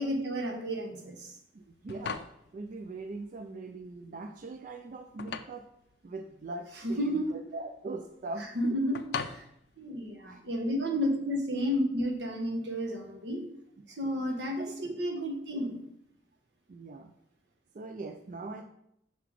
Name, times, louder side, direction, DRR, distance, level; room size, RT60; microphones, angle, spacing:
voice 1, 0.0-1.4 6.8-7.3 8.5-9.4 9.8-13.5 13.9-15.8, equal, 80° right, 2 dB, 1.2 m, -32 dB
voice 2, 1.5-5.7 6.0-9.0 9.9-10.0 10.3-10.4 14.0-14.1 14.6-14.7 16.7-17.1 17.7-18.6, right 3 dB, 45° right, 6 dB, 0.3 m, -41 dB
Plates Being Placed, 1.6-10.6, left 6 dB, 65° left, 0.4 m, -43 dB
5.7 x 4.0 x 4.6 m, 0.75 s
head